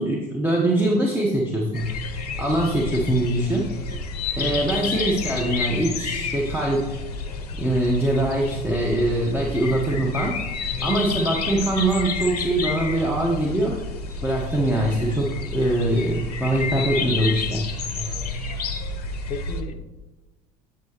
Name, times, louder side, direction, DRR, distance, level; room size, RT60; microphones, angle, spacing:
voice 1, 0.0-1.9 2.4-3.7 4.4-7.0 7.6-10.4 10.8-13.8 14.2-17.7, right 1 dB, 10° right, -2 dB, 0.9 m, -23 dB
sound 1, 1.7-19.6, left 4 dB, 80° left, 0.6 m, -30 dB
voice 2, 4.4-4.9 10.7-11.0 17.9-18.6 19.3-19.8, left 4 dB, 35° left, 5 dB, 0.6 m, -35 dB
7.6 x 4.9 x 2.9 m, 1.1 s
hypercardioid pair, 65°, 20 cm